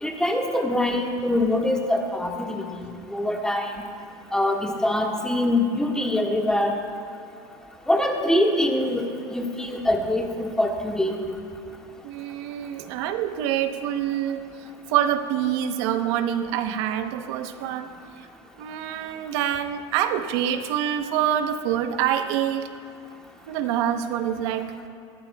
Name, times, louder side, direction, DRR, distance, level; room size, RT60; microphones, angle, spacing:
voice 1, 0.0-3.7 4.3-6.8 7.9-11.2, left 1 dB, 5° left, 0 dB, 1.7 m, -24 dB
voice 2, 12.0-18.3 18.6-22.7 23.5-24.7, right 10 dB, 75° right, 8 dB, 1.0 m, -26 dB
21.5 x 15.0 x 2.3 m, 2.6 s
supercardioid pair, 125°, 14 cm